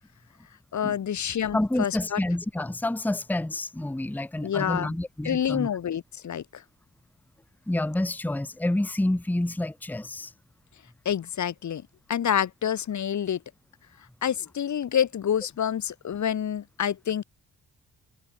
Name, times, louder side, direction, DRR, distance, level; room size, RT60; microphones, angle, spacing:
voice 1, 0.7-2.2 4.4-5.0 5.2-6.6 11.0-11.8 12.1-13.4 14.2-17.2, left 9 dB, 55° left, 1.4 m, -27 dB
voice 2, 1.5-5.7 7.7-10.3, left 1 dB, 5° left, 1.0 m, -28 dB
cardioid pair, 95°, 35 cm